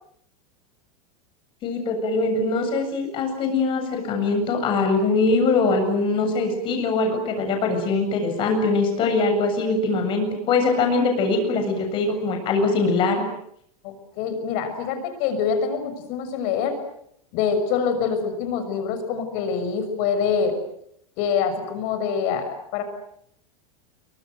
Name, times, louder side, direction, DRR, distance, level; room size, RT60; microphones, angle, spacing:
voice 1, 1.6-13.2, left 3 dB, 25° left, 4 dB, 7.6 m, -22 dB
voice 2, 13.8-16.8 17.3-20.6 21.2-22.8, left 6 dB, 40° left, 8 dB, 6.5 m, -25 dB
28.0 x 24.5 x 7.9 m, 0.71 s
supercardioid pair, 170°, 18 cm